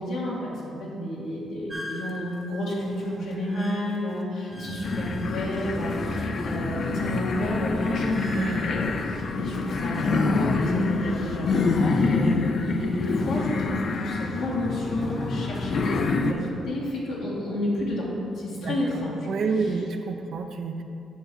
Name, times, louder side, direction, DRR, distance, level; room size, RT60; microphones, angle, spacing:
voice 1, 0.0-18.1 18.3-19.2 19.6-19.8, left 1 dB, 85° left, -5 dB, 1.7 m, -30 dB
sound 1, 1.7-6.4 6.7-8.7, equal, 15° right, 0.8 m, -43 dB
sound 2, 4.5-16.5, left 1 dB, 10° left, 0.9 m, -38 dB
sound 3, 4.8-16.3, left 4 dB, 55° left, 0.5 m, -27 dB
voice 2, 19.3-20.8, right 4 dB, 60° right, 5 dB, 0.5 m, -28 dB
9.2 x 3.3 x 6.2 m, 2.7 s
cardioid pair, 90°, 0 cm